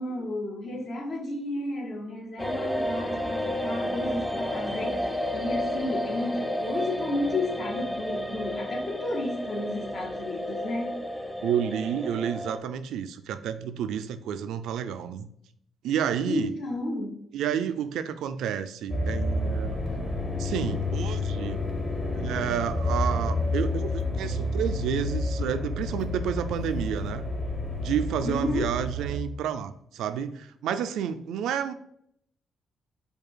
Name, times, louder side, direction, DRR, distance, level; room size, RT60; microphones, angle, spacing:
voice 1, 0.0-11.0 16.3-17.2 28.2-28.8, left 2 dB, 60° left, 1.1 m, -32 dB
sound 1, 2.4-12.6, left 1 dB, 5° left, 0.4 m, -32 dB
voice 2, 11.4-15.3 15.8-16.5 17.3-19.8 20.4-21.6 22.1-27.2 27.8-31.7, right 8 dB, 85° right, 0.3 m, -30 dB
sound 2, 18.9-29.2, left 2 dB, 30° left, 1.1 m, -29 dB
5.0 x 2.4 x 4.4 m
cardioid pair, 90°, 0 cm